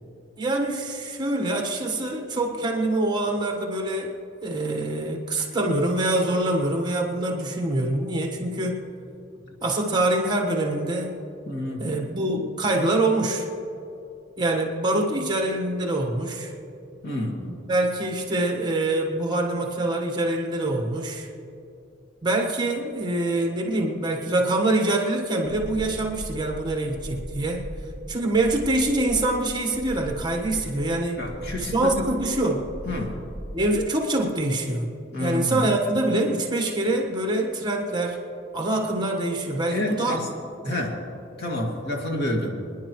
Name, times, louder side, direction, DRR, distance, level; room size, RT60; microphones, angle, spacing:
voice 1, 0.4-4.1 4.4-8.8 9.6-11.1 11.8-13.5 14.4-16.5 17.4-21.3 22.2-27.6 28.1-31.2 31.7-32.7 33.5-34.9 35.2-38.2 38.5-40.2 40.7-40.8, right 2 dB, 20° right, 1 dB, 1.3 m, -25 dB
voice 2, 11.5-11.9 17.0-17.4 31.2-32.1 32.8-33.2 35.1-35.7 39.7-40.3 40.6-41.0 41.4-42.5, left 1 dB, 55° left, -1 dB, 2.2 m, -28 dB
sound 1, 25.4-33.9, equal, 45° right, 2.5 m, -38 dB
27.0 x 10.5 x 3.1 m, 2.8 s
head